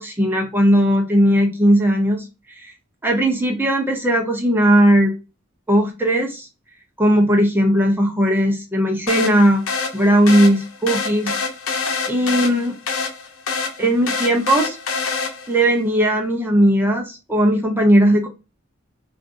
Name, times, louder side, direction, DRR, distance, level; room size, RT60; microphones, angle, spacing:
voice 1, 0.0-2.2 2.6-2.7 3.0-5.1 5.7-6.5 7.0-9.6 9.9-11.4 12.1-12.7 13.8-14.8 15.5-18.3, equal, 10° right, 2 dB, 0.7 m, -17 dB
sound 1, 9.1-15.7, left 4 dB, 85° left, 0.8 m, -26 dB
3.6 x 2.5 x 2.5 m, 0.28 s
head